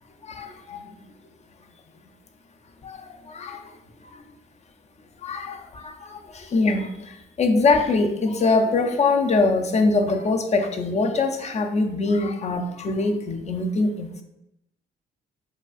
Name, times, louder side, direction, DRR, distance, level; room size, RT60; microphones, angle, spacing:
voice 1, 0.3-0.8 2.8-3.0 3.3-3.6 5.2-6.9 7.4-14.2, left 3 dB, 35° left, 6 dB, 0.5 m, -23 dB
4.8 x 2.4 x 2.4 m, 0.84 s
cardioid pair, 90°, 20 cm